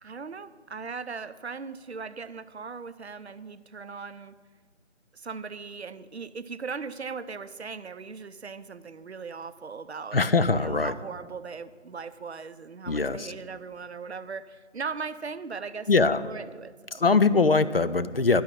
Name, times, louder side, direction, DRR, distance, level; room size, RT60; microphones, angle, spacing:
voice 1, 0.0-4.4 5.1-10.2 10.5-17.1, right 5 dB, 60° right, 14 dB, 0.6 m, -39 dB
voice 2, 10.1-10.9 12.9-13.3 15.9-16.2 16.9-18.4, left 4 dB, 50° left, 13 dB, 0.5 m, -22 dB
11.0 x 6.3 x 8.7 m, 1.6 s
figure-of-eight pair, 165°, 38 cm